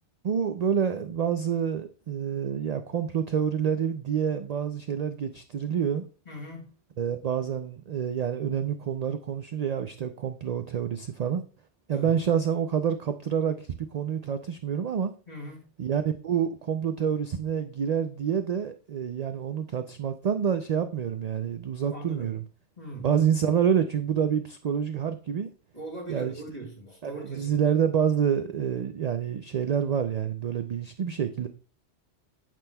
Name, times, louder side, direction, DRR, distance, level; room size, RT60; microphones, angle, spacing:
voice 1, 0.2-6.1 7.0-11.4 11.9-15.1 15.8-22.4 23.0-25.5 26.1-26.3 27.0-31.5, right 8 dB, 60° right, 0.4 m, -27 dB
voice 2, 6.3-6.7 11.9-12.1 15.3-15.6 21.9-22.4 22.8-23.1 25.7-27.6, right 1 dB, 35° left, 2.5 m, -40 dB
9.0 x 6.0 x 2.3 m
omnidirectional pair, 1.2 m